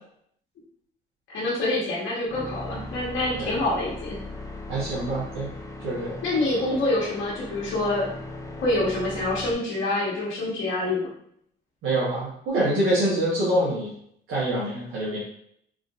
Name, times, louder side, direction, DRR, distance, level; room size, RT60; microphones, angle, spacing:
voice 1, 1.3-4.2 6.2-8.1 8.5-11.1, left 2 dB, 75° left, -5 dB, 1.3 m, -26 dB
sound 1, 2.2-9.5, left 2 dB, 15° left, 0.6 m, -39 dB
voice 2, 4.7-5.5 5.8-6.1 11.8-13.9 14.3-15.2, right 1 dB, 90° right, -8 dB, 1.1 m, -25 dB
3.7 x 2.6 x 2.4 m, 0.66 s
cardioid pair, 90°, 20 cm